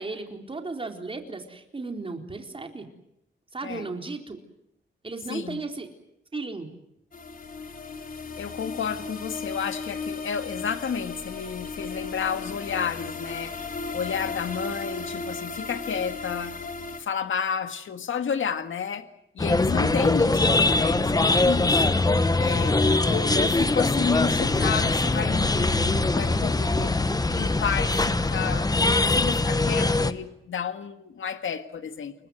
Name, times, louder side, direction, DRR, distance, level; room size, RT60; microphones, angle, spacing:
voice 1, 0.0-2.9 3.5-4.4 5.0-5.9 6.3-6.7 20.2-20.6, right 3 dB, 25° right, 4 dB, 4.2 m, -35 dB
voice 2, 5.3-5.6 8.4-13.6 13.9-16.6 17.0-19.1 19.3-22.0 22.4-22.8 23.0-27.0 27.3-32.1, left 7 dB, 80° left, 9 dB, 1.8 m, -31 dB
sound 1, 7.1-17.0, left 4 dB, 45° left, 4.1 m, -36 dB
sound 2, 19.4-30.1, left 2 dB, 20° left, 1.2 m, -22 dB
29.5 x 23.0 x 7.9 m, 0.81 s
wide cardioid pair, 145°, 20 cm